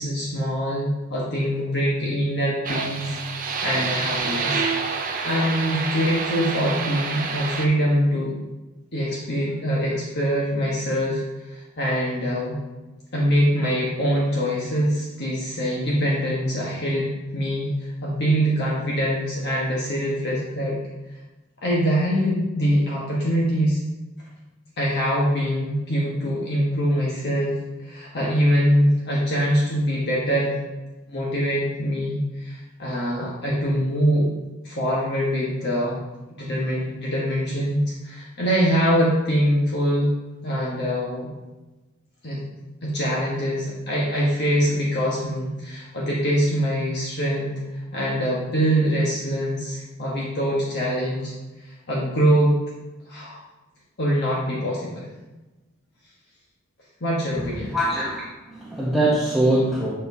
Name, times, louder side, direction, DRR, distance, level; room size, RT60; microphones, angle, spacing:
voice 1, 0.0-4.6 5.0-8.3 8.9-11.2 11.5-12.6 13.1-17.7 18.0-20.8 21.6-23.8 24.8-27.5 27.8-30.5 31.1-34.3 34.6-36.0 36.4-40.1 40.4-41.3 42.2-42.4 42.8-51.3 51.6-52.5 53.1-53.4 54.0-55.1 57.0-57.7, equal, 55° left, -5 dB, 1.2 m, -23 dB
sound 1, 2.6-7.7, right 4 dB, 40° right, 0.5 m, -28 dB
voice 2, 57.7-59.9, right 1 dB, ahead, -8 dB, 0.9 m, -22 dB
8.8 x 4.4 x 2.7 m, 1.1 s
head